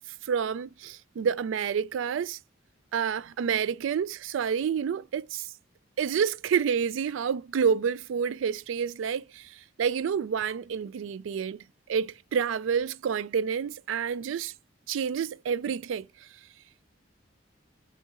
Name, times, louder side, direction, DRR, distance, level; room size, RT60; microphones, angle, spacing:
voice 1, 0.2-2.4 2.9-5.5 6.0-9.5 9.8-11.6 11.9-14.5 14.9-16.1, right 7 dB, 80° right, 0.3 m, -28 dB
5.1 x 2.8 x 2.4 m
head